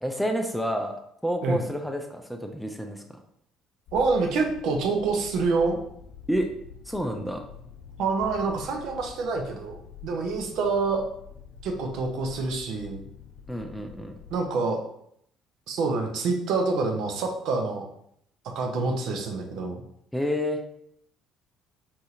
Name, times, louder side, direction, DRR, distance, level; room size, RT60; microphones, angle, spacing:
voice 1, 0.0-3.2 6.3-6.5 6.9-7.5 13.5-14.2 20.1-20.6, equal, ahead, 4 dB, 0.5 m, -29 dB
sound 1, 3.9-14.4, left 7 dB, 55° left, 0.5 m, -47 dB
voice 2, 3.9-5.8 8.0-11.0 11.6-13.0 14.3-14.8 15.7-17.9 18.6-19.8, right 4 dB, 60° right, 2 dB, 0.5 m, -27 dB
4.2 x 2.7 x 2.4 m, 0.73 s
figure-of-eight pair, 50°, 0 cm